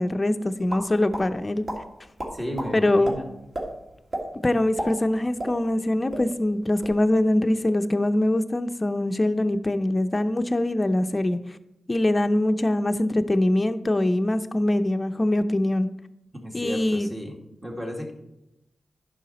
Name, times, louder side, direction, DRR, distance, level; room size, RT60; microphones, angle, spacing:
voice 1, 0.0-1.7 2.7-3.1 4.4-11.4 11.9-15.9 16.5-17.1, left 1 dB, 30° left, 9 dB, 0.6 m, -23 dB
sound 1, 0.7-1.2 1.6-1.8 2.2-2.7 3.0-3.1 3.5-3.7 4.1-4.3 4.6-5.8 6.1-6.2 6.6-7.0, right 1 dB, 35° right, 2.5 m, -31 dB
voice 2, 2.3-3.3 16.4-17.4 17.6-18.1, equal, 10° right, 0 dB, 2.2 m, -33 dB
11.0 x 5.7 x 4.2 m, 0.87 s
cardioid pair, 65°, 0 cm